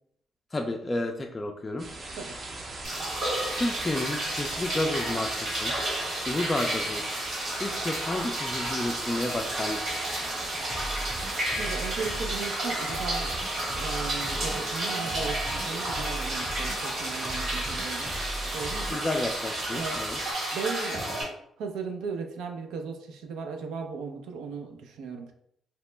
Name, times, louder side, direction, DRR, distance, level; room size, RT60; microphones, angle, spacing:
voice 1, 0.5-1.9 3.5-5.8 6.3-7.0 7.6-10.1 18.9-20.2, left 2 dB, 25° left, 2 dB, 0.3 m, -31 dB
sound 1, 1.8-20.3, right 2 dB, 45° right, 0.6 m, -40 dB
sound 2, 2.8-21.2, right 1 dB, 70° right, 1.4 m, -32 dB
sound 3, 10.7-19.4, right 1 dB, 5° right, 0.7 m, -38 dB
voice 2, 11.5-13.3 13.7-18.2 18.5-19.0 19.7-20.0 20.5-21.0 21.6-25.3, right 5 dB, 85° right, 5 dB, 0.4 m, -36 dB
2.8 x 2.1 x 3.2 m, 0.70 s
cardioid pair, 80°, 0 cm